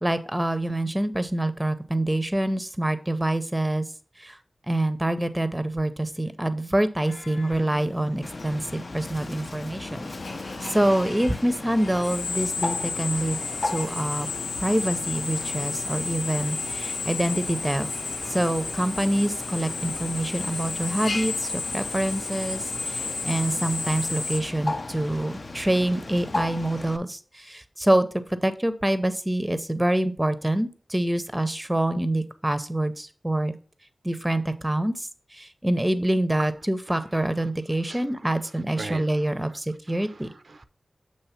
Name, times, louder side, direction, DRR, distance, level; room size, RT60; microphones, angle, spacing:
voice 1, 0.0-3.9 4.2-4.4 4.7-10.1 10.6-14.3 14.6-17.9 18.3-33.5 34.0-40.3, right 1 dB, 15° right, 0.6 m, -26 dB
Drill, 7.0-24.4, left 4 dB, 85° left, 0.7 m, -33 dB
Bird, 8.2-27.0, left 2 dB, 55° left, 0.5 m, -37 dB
voice 2, 38.7-39.3 39.9-40.6, right 3 dB, 65° right, 0.4 m, -39 dB
7.0 x 3.2 x 5.6 m
wide cardioid pair, 90°, 0 cm